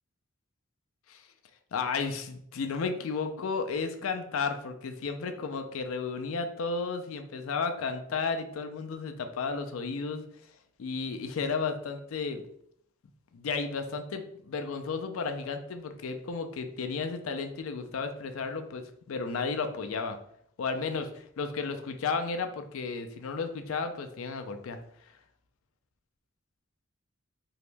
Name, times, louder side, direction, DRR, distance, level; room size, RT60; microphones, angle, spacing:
voice 1, 1.7-10.2 10.8-12.4 13.3-20.2 20.6-24.8, left 4 dB, 85° left, 7 dB, 0.4 m, -33 dB
2.9 x 2.7 x 3.3 m, 0.68 s
head